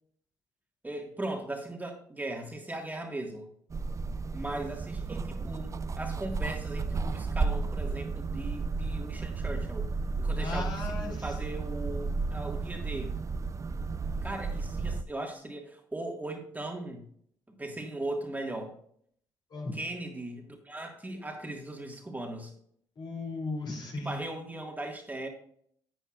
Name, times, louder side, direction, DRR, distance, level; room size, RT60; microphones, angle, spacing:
voice 1, 0.8-3.5 4.3-9.9 10.2-13.2 14.2-17.0 17.5-18.8 19.7-22.5 24.0-25.3, right 2 dB, 15° right, 2 dB, 1.7 m, -38 dB
sound 1, 3.7-15.0, right 4 dB, 35° right, 0.5 m, -33 dB
voice 2, 10.4-11.2 19.5-19.7 23.0-24.2, left 3 dB, 50° left, -1 dB, 3.0 m, -36 dB
10.0 x 8.0 x 2.5 m, 0.64 s
supercardioid pair, 55°, 9 cm